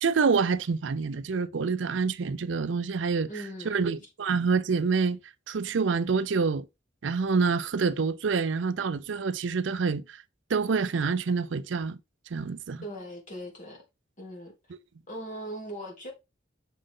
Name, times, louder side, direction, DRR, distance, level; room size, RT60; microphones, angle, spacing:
voice 1, 0.0-3.3 3.7-5.2 5.5-6.7 7.0-10.2 10.5-12.0 12.3-12.8, right 5 dB, 70° right, 0.5 m, -27 dB
voice 2, 3.3-3.8 12.8-13.8 14.2-14.5 15.1-16.1, equal, 45° left, 2.9 m, -39 dB
6.4 x 5.1 x 3.7 m
head